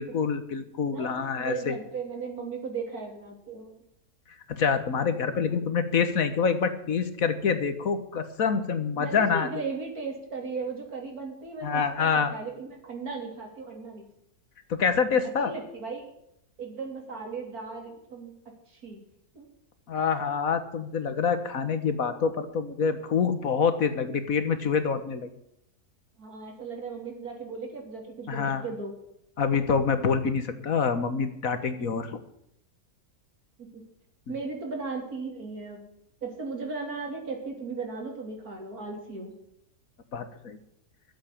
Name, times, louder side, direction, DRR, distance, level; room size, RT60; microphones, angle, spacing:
voice 1, 0.0-1.8 4.5-9.5 11.6-12.3 14.7-15.5 19.9-25.3 28.3-28.6 29.4-32.1 34.3-34.4 40.1-40.6, left 6 dB, 65° left, 10 dB, 1.7 m, -26 dB
voice 2, 0.9-3.8 5.4-5.6 9.0-14.0 15.2-16.1 16.6-18.3 18.7-19.0 19.3-19.4 26.2-28.9 33.6-33.8 34.3-35.8 36.2-39.4, right 4 dB, 75° right, 2 dB, 3.6 m, -36 dB
12.5 x 8.0 x 8.4 m, 0.77 s
omnidirectional pair, 1.6 m